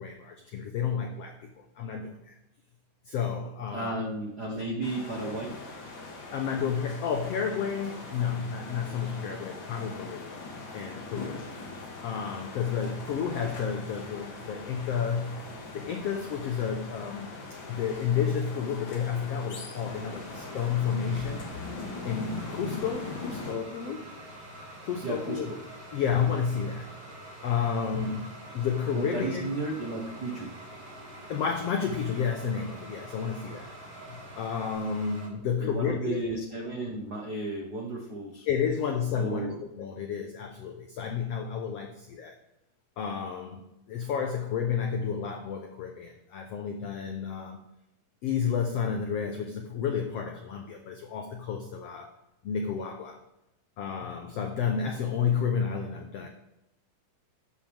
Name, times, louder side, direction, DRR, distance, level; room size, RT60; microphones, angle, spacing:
voice 1, 0.0-2.3 3.0-4.0 6.3-10.4 10.7-11.4 12.0-15.4 15.7-21.5 22.0-24.1 24.8-25.5 25.9-26.9 27.4-29.5 31.3-33.7 34.1-36.2 38.5-42.4 43.0-47.6 48.2-52.1 52.4-53.2 53.8-56.3, left 7 dB, 85° left, 4 dB, 1.4 m, -31 dB
voice 2, 3.7-5.5 25.0-25.6 28.9-30.5 35.5-38.5 39.1-39.6, right 2 dB, 85° right, 0 dB, 0.8 m, -33 dB
sound 1, 4.8-23.5, left 3 dB, 40° left, 2.1 m, -41 dB
sound 2, 19.2-35.3, right 1 dB, 30° right, 3.6 m, -47 dB
Fire, 19.7-34.8, right 2 dB, 50° right, 5.4 m, -52 dB
12.5 x 8.6 x 3.5 m, 0.89 s
omnidirectional pair, 4.0 m